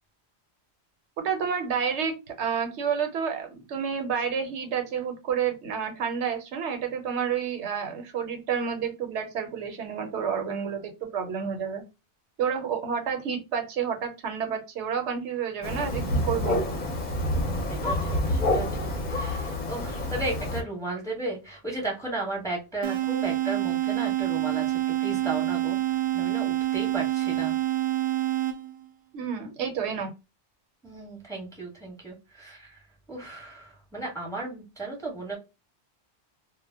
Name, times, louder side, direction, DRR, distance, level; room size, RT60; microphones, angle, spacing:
voice 1, 1.2-11.8 12.4-16.6 29.1-30.1, right 7 dB, 80° right, 5 dB, 0.9 m, -30 dB
Thunder, 15.6-20.6, left 1 dB, 45° left, 0.8 m, -28 dB
voice 2, 17.7-27.6 30.8-32.8 33.1-35.4, right 2 dB, 5° left, -2 dB, 0.9 m, -35 dB
sound 1, 22.8-28.9, right 14 dB, 60° right, 0.5 m, -27 dB
2.1 x 2.1 x 3.3 m, 0.27 s
omnidirectional pair, 1.2 m